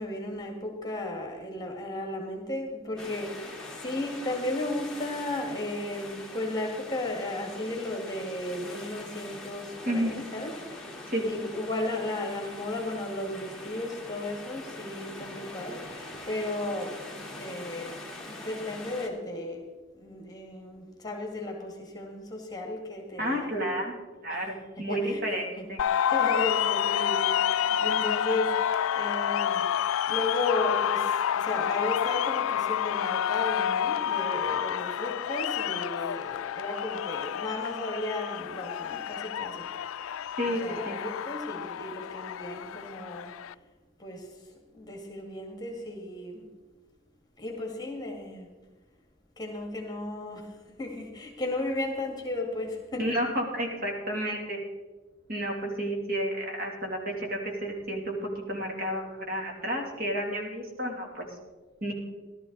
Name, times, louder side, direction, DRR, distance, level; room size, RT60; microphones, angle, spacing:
voice 1, 0.0-3.4 3.8-10.5 11.3-17.9 18.3-19.6 20.0-23.5 24.3-24.4 24.9-25.2 25.6-25.7 26.1-29.6 30.1-31.0 31.3-39.7 40.5-43.3 44.0-44.2 44.7-46.4 47.4-48.5 49.4-50.4 50.8-53.2, left 2 dB, 20° left, 2 dB, 2.1 m, -34 dB
sound 1, 3.0-19.1, left 2 dB, 5° left, 1.8 m, -43 dB
voice 2, 9.8-10.2 11.1-11.4 23.2-25.8 40.4-40.6 40.8-41.0 53.0-54.6 55.3-61.3 61.8-61.9, equal, 45° right, 0 dB, 2.8 m, -31 dB
sound 2, 25.8-43.5, left 9 dB, 80° left, 0.3 m, -29 dB
15.5 x 12.5 x 4.0 m, 1.2 s
head